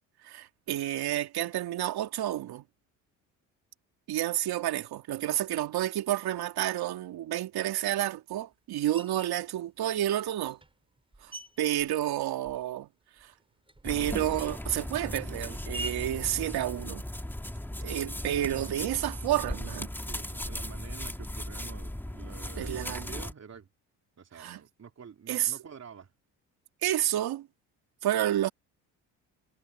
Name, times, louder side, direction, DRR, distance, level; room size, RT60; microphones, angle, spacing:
voice 1, 0.2-2.6 4.1-10.6 11.2-12.9 13.2-13.3 13.8-17.0 17.8-19.9 22.6-23.1 24.3-24.6 25.3-25.5 26.8-27.5 28.0-28.5, right 13 dB, 65° right, 2.9 m, -30 dB
Screech, 8.9-9.4 10.2-12.9 13.2-17.5, right 1 dB, 15° right, 6.3 m, -47 dB
sound 1, 13.8-23.3, left 1 dB, 5° left, 2.4 m, -37 dB
voice 2, 20.0-23.7 24.2-26.1, right 6 dB, 40° right, 3.2 m, -48 dB
supercardioid pair, 70°, 40 cm